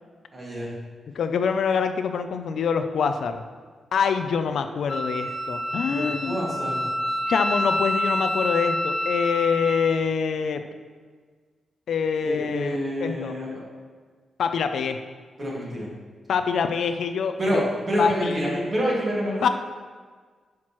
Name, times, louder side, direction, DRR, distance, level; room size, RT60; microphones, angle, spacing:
voice 1, 0.3-0.7 5.9-6.8 12.2-13.6 15.4-15.9 17.4-19.5, equal, 30° right, -5 dB, 2.1 m, -27 dB
voice 2, 1.2-3.4 3.9-6.4 7.3-10.6 11.9-13.4 14.4-15.0 16.3-17.6 18.0-18.4 19.4-19.5, left 6 dB, 70° left, 8 dB, 0.4 m, -25 dB
Wind instrument woodwind instrument, 4.9-10.0, left 1 dB, 45° left, 1.3 m, -27 dB
10.5 x 5.9 x 3.1 m, 1.5 s
wide cardioid pair, 170°, 0 cm